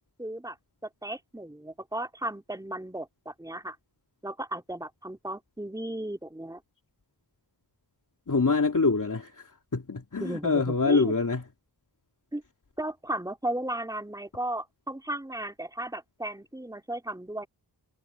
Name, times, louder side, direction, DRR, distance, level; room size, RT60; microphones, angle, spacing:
voice 1, 0.2-0.6 0.8-3.8 4.2-6.6 10.2-11.1 12.3-12.4 12.8-17.5, right 1 dB, 10° right, 3.0 m, -35 dB
voice 2, 8.3-11.4, left 4 dB, 45° left, 3.1 m, -25 dB
wide cardioid pair, 70°, 43 cm